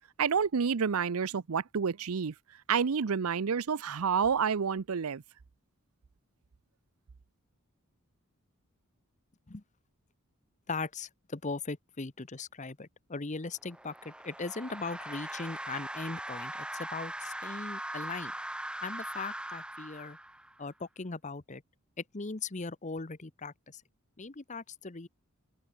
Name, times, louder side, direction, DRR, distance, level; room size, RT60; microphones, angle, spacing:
voice 1, 0.2-2.3 2.7-5.2, right 6 dB, 85° right, 0.6 m, -29 dB
voice 2, 10.7-18.3 18.8-20.2 20.6-21.6 22.0-23.8 24.2-25.1, left 4 dB, 35° left, 1.0 m, -39 dB
sound 1, 13.6-20.6, right 1 dB, 5° right, 0.7 m, -40 dB
head